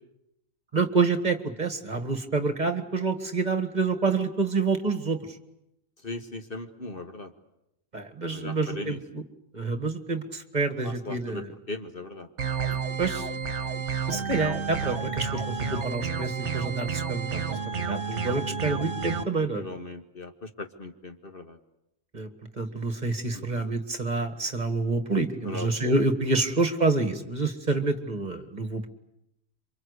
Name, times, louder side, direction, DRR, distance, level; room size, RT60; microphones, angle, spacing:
voice 1, 0.7-5.2 7.9-9.2 9.5-11.5 13.0-13.3 14.1-19.6 22.1-22.3 22.6-28.9, right 3 dB, 35° right, 8 dB, 2.0 m, -28 dB
voice 2, 6.0-7.3 8.3-9.0 10.8-12.3 19.6-21.6 23.3-23.6 25.4-25.9, left 2 dB, 45° left, 6 dB, 1.7 m, -38 dB
sound 1, 12.4-19.2, right 6 dB, 60° right, 1.5 m, -31 dB
27.5 x 24.5 x 8.2 m, 0.84 s
omnidirectional pair, 1.4 m